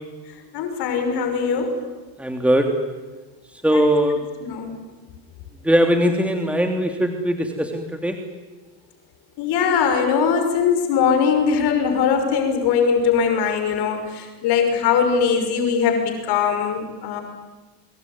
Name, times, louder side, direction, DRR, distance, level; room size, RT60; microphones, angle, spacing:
voice 1, 0.5-1.8 3.7-3.8 4.4-4.8 9.4-17.2, left 6 dB, 65° left, 5 dB, 5.9 m, -21 dB
voice 2, 2.2-2.7 3.5-4.2 5.6-8.2, equal, 5° right, 4 dB, 2.9 m, -20 dB
25.0 x 22.0 x 9.6 m, 1.2 s
supercardioid pair, 90°, 42 cm